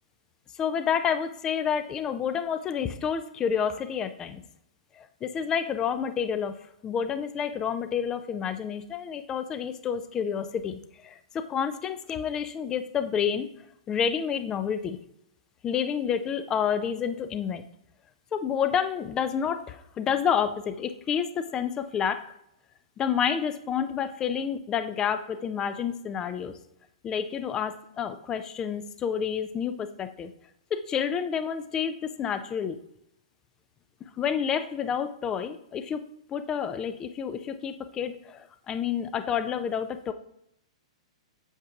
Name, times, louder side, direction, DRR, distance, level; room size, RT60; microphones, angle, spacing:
voice 1, 0.6-4.4 4.9-13.5 13.9-15.0 15.6-17.6 18.3-22.2 23.0-26.5 27.0-30.3 30.7-32.8 34.2-36.0 36.3-40.1, left 7 dB, 20° left, 11 dB, 0.4 m, -29 dB
7.9 x 6.9 x 2.4 m, 0.77 s
figure-of-eight pair, 110°, 3 cm